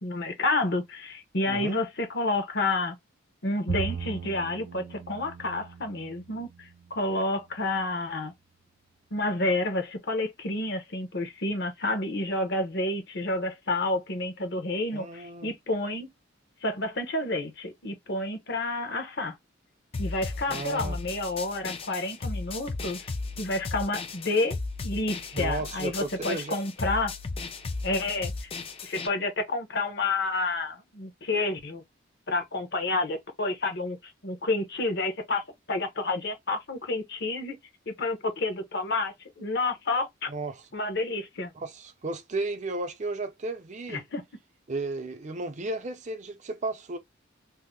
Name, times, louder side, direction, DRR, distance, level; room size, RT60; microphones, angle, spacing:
voice 1, 0.0-3.0 3.4-8.3 9.1-16.1 16.6-19.3 20.0-23.1 23.4-24.6 24.8-27.1 27.8-28.5 28.8-31.8 32.3-35.4 35.7-37.5 37.9-40.3 40.7-41.5 43.9-44.2, left 2 dB, 60° left, 0.9 m, -29 dB
voice 2, 1.5-1.8 14.9-15.5 20.5-21.0 25.3-26.6 40.3-40.6 41.5-44.0 44.7-47.0, right 2 dB, 40° right, 0.6 m, -34 dB
Bowed string instrument, 3.7-7.1, right 6 dB, 80° right, 0.3 m, -38 dB
sound 1, 19.9-29.1, left 3 dB, 30° left, 0.4 m, -35 dB
2.7 x 2.1 x 3.7 m
head